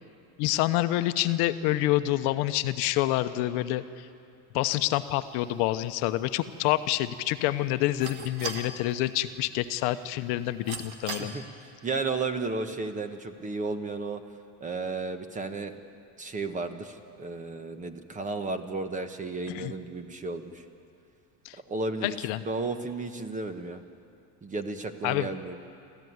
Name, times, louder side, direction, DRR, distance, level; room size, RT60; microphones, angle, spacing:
voice 1, 0.4-4.1 4.5-11.3 19.5-19.7 21.4-21.6 22.0-22.4 25.0-25.3, left 15 dB, 60° left, 11 dB, 0.9 m, -27 dB
sound 1, 4.8-11.2, right 5 dB, 75° right, 2.4 m, -43 dB
voice 2, 11.8-14.2 14.6-15.7 16.2-20.6 21.7-22.2 22.4-23.8 24.4-25.6, right 3 dB, 20° right, 9 dB, 1.1 m, -33 dB
27.0 x 14.5 x 9.5 m, 2.5 s
supercardioid pair, 145°, 43 cm